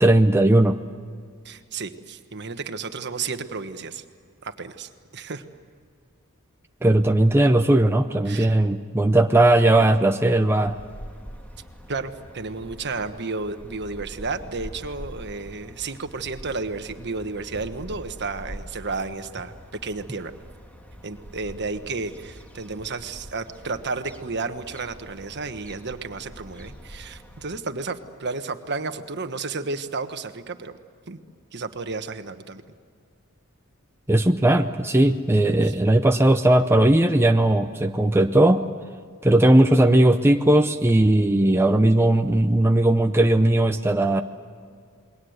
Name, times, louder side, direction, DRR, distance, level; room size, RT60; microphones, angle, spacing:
voice 1, 0.0-0.8 6.8-10.8 34.1-38.7 39.2-44.2, right 1 dB, 10° right, 5 dB, 0.7 m, -18 dB
voice 2, 1.4-4.0 4.4-5.4 8.3-8.6 11.9-19.5 19.8-20.3 21.0-30.7 31.1-31.2 31.5-32.6 35.6-35.7, right 4 dB, 55° right, 8 dB, 1.4 m, -32 dB
sound 1, 10.7-27.6, equal, 5° left, 1.9 m, -44 dB
28.5 x 22.0 x 8.0 m, 2.1 s
head